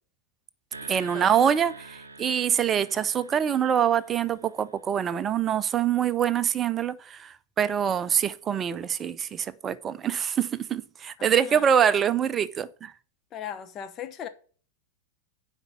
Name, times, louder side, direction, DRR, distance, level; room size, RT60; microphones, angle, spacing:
sound 1, 0.7-5.2, right 3 dB, 75° right, 0.9 m, -46 dB
voice 1, 0.9-12.9, right 8 dB, 25° right, 0.5 m, -25 dB
voice 2, 11.2-11.7 13.3-14.3, left 9 dB, 30° left, 1.1 m, -38 dB
8.0 x 5.2 x 6.9 m
figure-of-eight pair, 90°, 0 cm